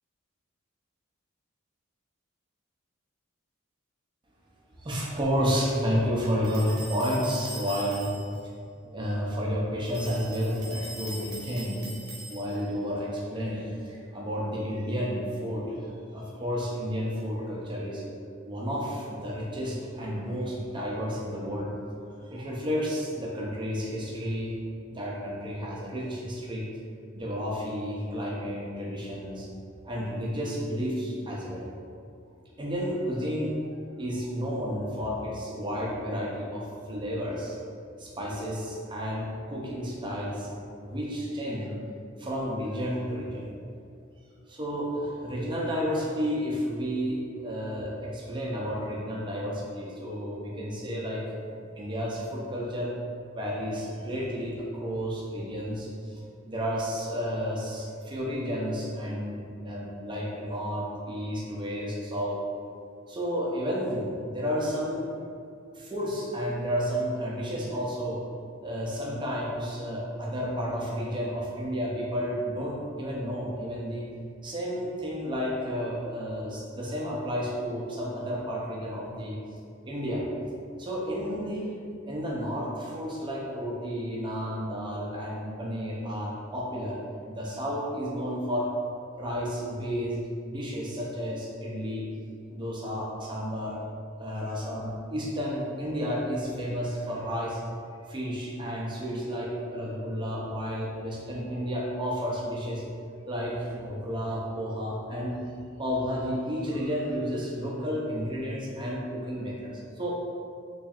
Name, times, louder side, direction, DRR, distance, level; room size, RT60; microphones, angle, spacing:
voice 1, 4.8-8.1 8.9-11.9 12.3-18.0 18.4-21.7 22.3-24.5 24.9-26.6 27.2-29.5 29.8-31.7 32.6-33.6 34.0-37.6 38.0-40.5 40.8-41.7 42.2-43.5 44.5-51.2 51.8-52.9 53.3-62.4 63.1-65.1 65.7-68.2 68.6-74.1 74.4-79.4 79.8-80.3 80.8-81.7 82.1-87.0 87.3-88.7 89.2-92.1 92.5-93.8 94.2-97.6 98.1-102.8 103.3-105.4 105.8-110.3, equal, 20° right, -4 dB, 0.5 m, -31 dB
sound 1, 6.4-8.4 9.9-12.7, right 1 dB, 50° right, 0.8 m, -42 dB
4.3 x 3.1 x 2.4 m, 2.4 s
head